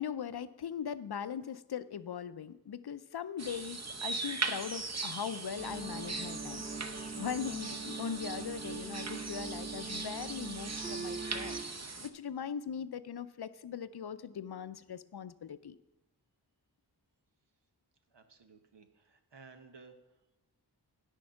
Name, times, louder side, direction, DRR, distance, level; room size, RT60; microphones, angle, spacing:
voice 1, 0.0-6.7 7.2-11.6 12.0-15.8, left 8 dB, 70° left, 14 dB, 0.5 m, -40 dB
sound 1, 3.4-12.1, right 3 dB, 40° right, 0.7 m, -40 dB
sound 2, 5.6-11.6, right 4 dB, 20° right, 1.3 m, -42 dB
voice 2, 18.1-20.4, right 4 dB, 90° right, 6 dB, 0.9 m, -57 dB
9.7 x 6.4 x 5.7 m, 0.99 s
wide cardioid pair, 50°, 41 cm